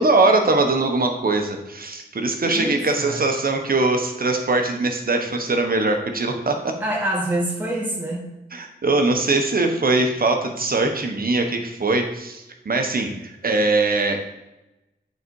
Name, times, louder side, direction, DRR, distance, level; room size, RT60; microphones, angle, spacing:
voice 1, 0.0-6.7 8.5-14.2, right 2 dB, 55° right, 4 dB, 1.1 m, -21 dB
voice 2, 2.5-3.3 6.8-8.3, right 1 dB, 10° right, -5 dB, 1.6 m, -26 dB
8.0 x 4.0 x 4.7 m, 0.95 s
cardioid pair, 55°, 18 cm